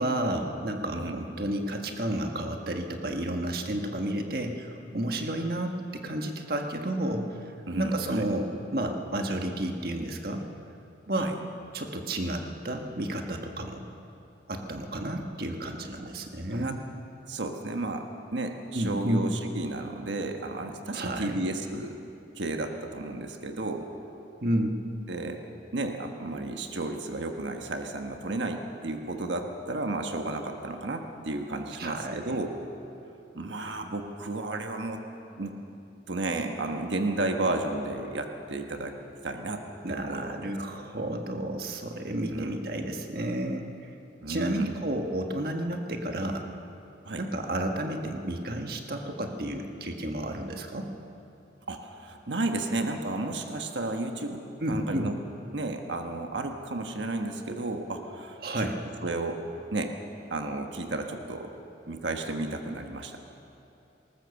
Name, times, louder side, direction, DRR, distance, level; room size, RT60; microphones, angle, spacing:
voice 1, 0.0-7.5 7.8-10.4 11.1-11.4 11.7-13.9 14.5-16.8 18.7-19.3 20.9-21.3 24.4-24.8 31.8-32.2 39.8-43.9 44.3-46.5 47.2-50.9 54.6-55.1 58.4-58.8, right 1 dB, 55° right, 3 dB, 1.5 m, -31 dB
voice 2, 7.7-8.2 11.2-11.3 16.5-16.8 17.3-22.0 22.4-23.9 25.1-25.4 25.7-32.5 33.3-35.0 35.4-35.6 36.1-39.0 39.2-40.6 42.3-42.5 44.2-44.8 47.0-47.3 51.7-55.2 55.5-58.7 59.0-59.4 59.7-60.0 60.3-61.5 61.9-63.2, right 2 dB, 85° right, 4 dB, 1.4 m, -33 dB
19.5 x 19.5 x 7.0 m, 2.8 s
head